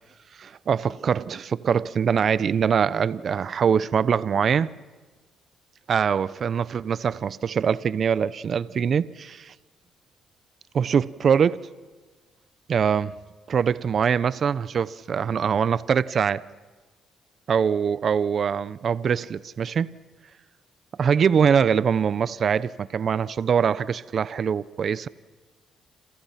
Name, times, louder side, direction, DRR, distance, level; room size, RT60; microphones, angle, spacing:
voice 1, 0.4-4.7 5.9-9.5 10.7-11.6 12.7-13.1 13.5-16.4 17.5-19.9 21.0-25.1, right 7 dB, 55° right, 0.8 m, -23 dB
29.5 x 28.0 x 5.9 m
supercardioid pair, 65°, 0 cm